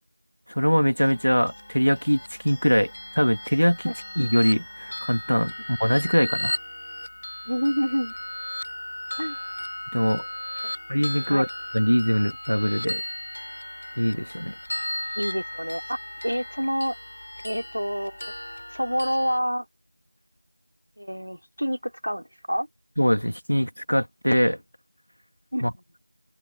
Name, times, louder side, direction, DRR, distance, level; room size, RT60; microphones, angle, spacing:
voice 1, 0.5-6.6 9.9-10.2 10.9-11.5 11.7-13.0 14.0-14.5 23.0-24.6 25.6-25.7, equal, 85° left, 2.4 m, -23 dB
sound 1, 1.0-19.4, left 1 dB, 40° left, 5.3 m, -36 dB
voice 2, 7.5-8.1 9.2-9.4 10.6-10.7 11.3-11.4 15.2-16.0 16.2-17.0 17.4-18.3 18.7-19.7 21.0-22.7 25.5-25.7, equal, 85° right, 2.6 m, -27 dB
open air
figure-of-eight pair, 175°, 0 cm